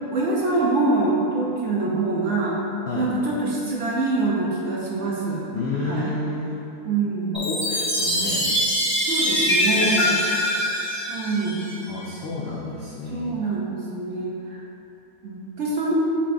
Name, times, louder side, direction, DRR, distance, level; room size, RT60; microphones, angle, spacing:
voice 1, 0.1-2.6 2.9-5.5 5.8-6.1 6.8-7.4 9.0-10.1 11.1-11.7 13.1-14.6 15.2-15.9, right 3 dB, 60° right, -5 dB, 0.8 m, -25 dB
voice 2, 5.5-6.6 7.3-8.5 9.7-9.9 10.4-10.5 11.9-13.4, left 2 dB, 85° left, -4 dB, 0.5 m, -30 dB
Chime, 7.3-11.9, equal, 10° right, 0.8 m, -23 dB
6.0 x 3.5 x 2.5 m, 2.8 s
omnidirectional pair, 1.6 m